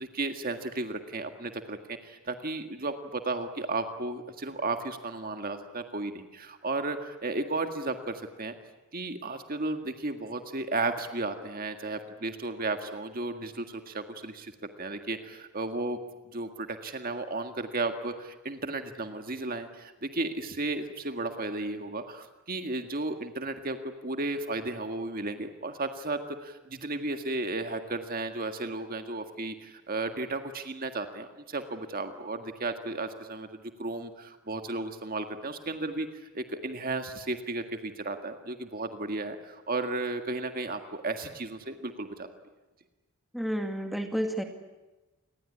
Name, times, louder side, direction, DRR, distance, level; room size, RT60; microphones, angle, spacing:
voice 1, 0.0-8.6 8.9-16.0 16.3-42.3, right 2 dB, 40° right, 7 dB, 1.8 m, -34 dB
voice 2, 43.3-44.4, equal, ahead, 4 dB, 2.2 m, -30 dB
28.0 x 20.5 x 9.8 m, 1.1 s
head